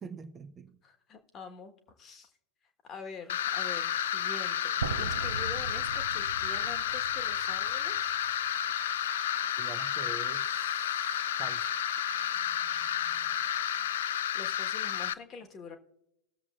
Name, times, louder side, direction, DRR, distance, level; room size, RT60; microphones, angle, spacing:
voice 1, 0.0-0.8 9.6-11.7, right 5 dB, 20° right, 7 dB, 0.7 m, -46 dB
voice 2, 0.8-2.3 2.8-8.2 13.9-15.8, left 5 dB, 25° left, 6 dB, 1.3 m, -46 dB
sound 1, 3.3-15.1, left 11 dB, 60° left, 0.3 m, -31 dB
sound 2, 3.3-14.2, right 1 dB, ahead, 1.0 m, -43 dB
sound 3, 4.8-8.8, right 5 dB, 70° right, 0.5 m, -40 dB
19.0 x 7.2 x 2.4 m, 0.82 s
figure-of-eight pair, 90°, 0 cm